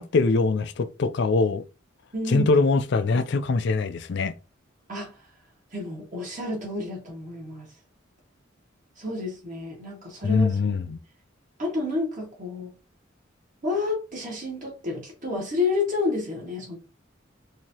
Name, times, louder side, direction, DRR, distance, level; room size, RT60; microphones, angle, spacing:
voice 1, 0.0-1.6 2.3-4.3 10.2-11.0, left 3 dB, 60° left, 0.4 m, -23 dB
voice 2, 2.1-2.5 4.9-5.1 5.7-7.7 9.0-10.5 11.6-12.7 13.6-16.8, left 3 dB, 40° right, 1.9 m, -30 dB
4.6 x 2.8 x 2.8 m
head